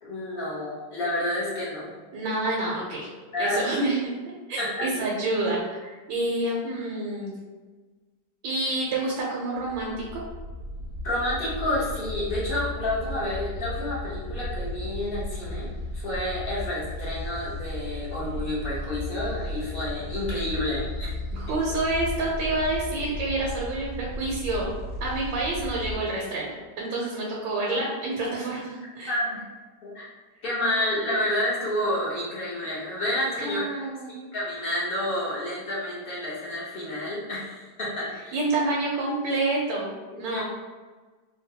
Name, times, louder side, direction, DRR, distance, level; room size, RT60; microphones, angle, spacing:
voice 1, 0.0-1.9 3.3-3.6 4.6-4.9 11.0-15.7 15.9-21.4 29.1-29.4 29.8-30.0 30.4-33.7 34.1-38.4 40.3-40.4, left 1 dB, 45° left, -7 dB, 0.8 m, -29 dB
voice 2, 2.1-3.1 3.4-4.1 4.5-7.3 8.4-10.2 21.3-24.7 25.0-29.2 33.4-34.1 38.3-40.4, right 2 dB, 85° right, -3 dB, 1.4 m, -28 dB
sound 1, 9.5-26.0, left 1 dB, 65° right, 1.0 m, -35 dB
3.8 x 2.2 x 2.7 m, 1.4 s
omnidirectional pair, 2.0 m